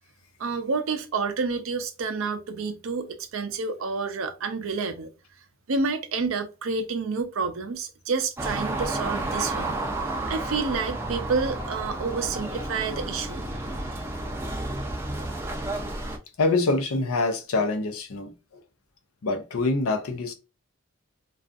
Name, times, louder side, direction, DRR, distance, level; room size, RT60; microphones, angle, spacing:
voice 1, 0.4-5.1 5.7-9.7 10.3-13.4 13.9-14.0, right 4 dB, 70° right, 0.5 m, -29 dB
sound 1, 8.4-16.2, right 2 dB, 10° right, 0.4 m, -31 dB
voice 2, 16.4-18.3 19.2-20.3, left 3 dB, 85° left, 0.5 m, -25 dB
2.4 x 2.4 x 2.4 m
head